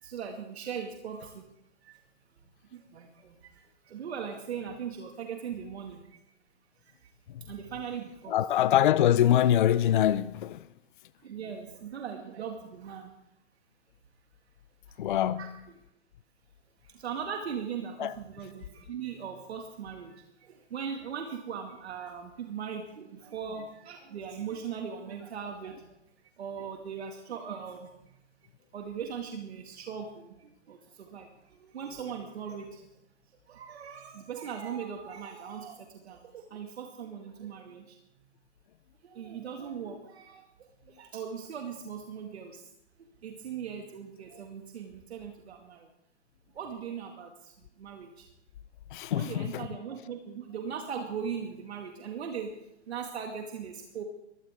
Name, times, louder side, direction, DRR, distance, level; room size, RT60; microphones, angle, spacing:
voice 1, 0.0-1.4 1.8-2.0 2.7-6.2 6.8-7.1 7.5-8.4 11.2-13.1 14.9-15.0 15.4-15.5 16.8-26.0 26.4-27.9 28.7-32.9 33.5-38.0 39.0-40.5 40.9-42.7 43.0-45.9 46.5-48.3 49.1-52.5 52.9-54.0, right 7 dB, 65° right, 2.2 m, -39 dB
voice 2, 8.3-10.7 15.0-15.6 18.0-18.2 48.9-49.7, left 11 dB, 45° left, 0.5 m, -24 dB
21.5 x 16.0 x 3.6 m
hypercardioid pair, 150°, 35 cm